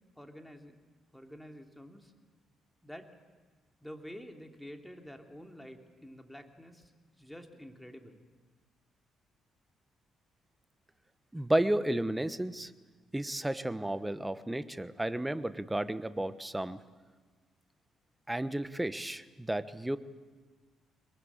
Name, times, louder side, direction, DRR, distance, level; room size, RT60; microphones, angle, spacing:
voice 1, 0.2-0.8 1.1-2.1 2.8-3.1 3.8-6.9 7.2-8.2, equal, 5° left, 4 dB, 3.0 m, -48 dB
voice 2, 11.3-12.7 13.1-16.8 18.3-20.0, right 1 dB, 10° right, 14 dB, 1.2 m, -32 dB
23.0 x 21.0 x 8.7 m, 1.4 s
hypercardioid pair, 45°, 0 cm